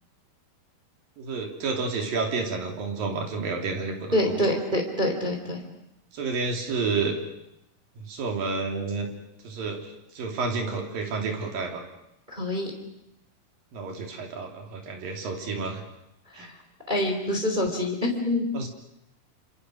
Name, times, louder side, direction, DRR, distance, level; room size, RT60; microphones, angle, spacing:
voice 1, 1.2-4.6 6.1-7.1 8.0-9.1 9.4-11.8 13.7-15.8 16.3-16.5 18.5-18.7, right 4 dB, 65° right, 3 dB, 4.8 m, -30 dB
voice 2, 4.1-5.7 12.3-12.7 16.3-16.5 16.9-18.4, left 1 dB, 15° right, 2 dB, 3.2 m, -26 dB
28.0 x 27.0 x 6.4 m, 0.86 s
omnidirectional pair, 4.4 m